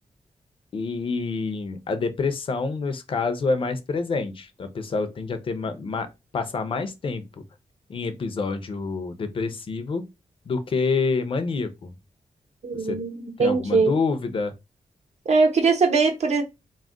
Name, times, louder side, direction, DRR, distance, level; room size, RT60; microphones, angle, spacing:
voice 1, 0.7-6.1 6.3-7.4 7.9-10.1 10.5-11.9 12.7-13.0 13.4-14.5, left 4 dB, 45° left, 0.5 m, -27 dB
voice 2, 12.6-13.9 15.3-16.4, right 4 dB, 60° right, 0.7 m, -21 dB
2.3 x 2.1 x 3.6 m
wide cardioid pair, 140°, 13 cm